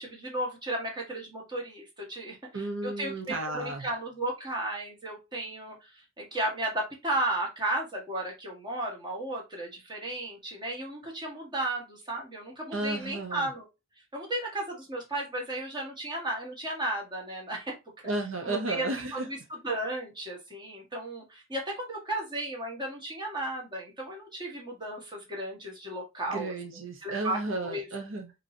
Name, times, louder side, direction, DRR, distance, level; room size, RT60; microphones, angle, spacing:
voice 1, 0.0-13.7 14.1-17.7 18.4-18.9 19.1-26.5 27.0-27.9, right 1 dB, 25° right, 1.6 m, -34 dB
voice 2, 2.5-3.9 12.7-13.5 18.0-19.3 26.3-28.3, right 2 dB, 75° right, 0.9 m, -33 dB
5.1 x 3.0 x 2.8 m
head